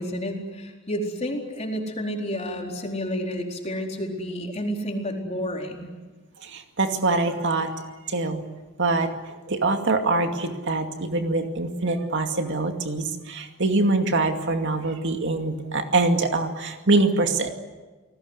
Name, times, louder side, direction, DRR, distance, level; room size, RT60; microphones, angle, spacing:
voice 1, 0.0-5.9, equal, 30° left, 1 dB, 4.4 m, -30 dB
voice 2, 6.4-7.7 8.1-8.4 8.8-9.1 9.5-17.5, right 2 dB, 60° right, 5 dB, 2.4 m, -24 dB
29.5 x 19.5 x 8.3 m, 1.3 s
head